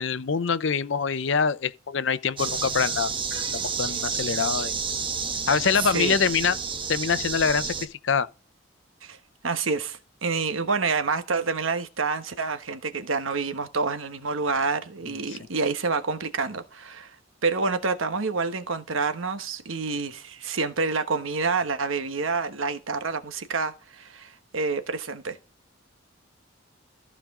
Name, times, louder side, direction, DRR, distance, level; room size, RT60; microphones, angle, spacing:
voice 1, 0.0-4.7 5.5-6.6 6.9-8.3 15.1-15.4, left 6 dB, 65° left, 0.6 m, -25 dB
sound 1, 2.4-7.9, right 5 dB, 25° right, 1.0 m, -30 dB
voice 2, 9.4-17.1 17.4-25.4, right 4 dB, 85° right, 1.2 m, -28 dB
14.5 x 5.1 x 3.7 m
head